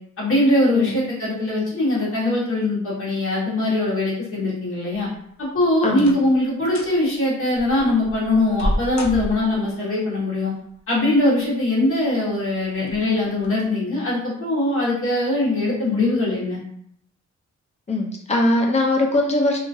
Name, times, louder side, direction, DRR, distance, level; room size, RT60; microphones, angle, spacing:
voice 1, 0.2-5.1 5.4-10.5 10.9-16.6, left 2 dB, 45° left, -7 dB, 1.3 m, -21 dB
sound 1, 5.0-5.4 5.9-6.3 6.6-7.0 7.5-9.7 10.9-11.5 12.0-12.1 12.8-13.0 13.4-13.5, equal, 70° left, 0.6 m, -30 dB
voice 2, 17.9-19.6, left 2 dB, 25° left, 1 dB, 0.5 m, -20 dB
2.8 x 2.4 x 2.6 m, 0.68 s
wide cardioid pair, 145°, 29 cm